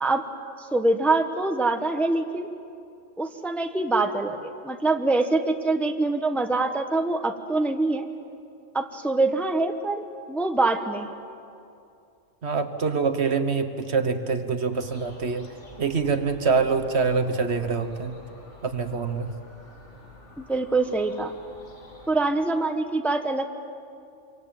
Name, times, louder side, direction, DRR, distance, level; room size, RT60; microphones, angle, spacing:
voice 1, 0.6-2.5 3.2-8.1 8.7-11.1 20.4-21.3 22.1-23.5, right 2 dB, ahead, 6 dB, 1.0 m, -24 dB
voice 2, 12.4-15.5 15.8-18.1 18.6-19.3, right 5 dB, 55° right, 8 dB, 1.5 m, -25 dB
sound 1, 14.7-22.2, left 1 dB, 65° left, 2.9 m, -49 dB
26.0 x 24.5 x 9.0 m, 2.5 s
omnidirectional pair, 1.3 m